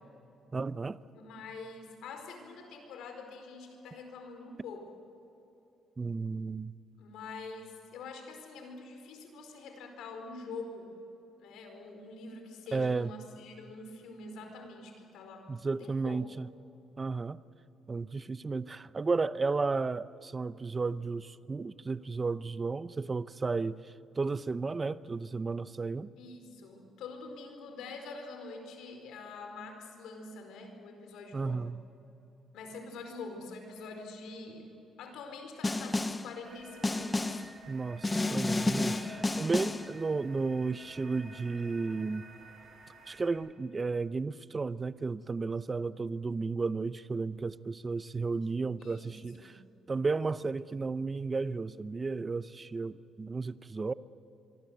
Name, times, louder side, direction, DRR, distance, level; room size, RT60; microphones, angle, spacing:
voice 1, 0.5-1.0 6.0-6.7 12.7-13.1 15.5-16.5 17.0-17.4 17.9-26.1 31.3-31.8 37.7-38.9 39.4-42.3 43.1-49.5 49.9-53.9, right 4 dB, 25° right, 0.7 m, -33 dB
voice 2, 1.1-4.9 7.0-10.9 11.4-16.2 26.2-31.7 32.5-34.7 35.0-37.4 38.9-39.3 48.8-49.1 49.4-49.6, left 3 dB, 85° left, 4.6 m, -45 dB
Snare drum, 35.6-36.3 36.8-37.5 38.0-39.9, left 2 dB, 15° left, 0.8 m, -31 dB
sound 1, 36.4-43.3, right 2 dB, 55° right, 5.7 m, -52 dB
24.5 x 24.5 x 8.0 m
cardioid pair, 115°, 0 cm